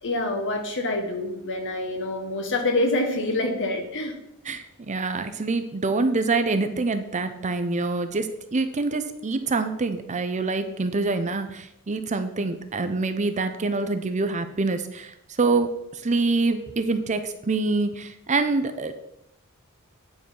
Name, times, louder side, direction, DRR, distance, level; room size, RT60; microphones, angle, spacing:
voice 1, 0.0-4.1, left 2 dB, 60° left, 4 dB, 1.4 m, -26 dB
voice 2, 4.5-18.9, right 3 dB, 35° right, 9 dB, 0.6 m, -26 dB
9.4 x 4.7 x 5.4 m, 0.79 s
head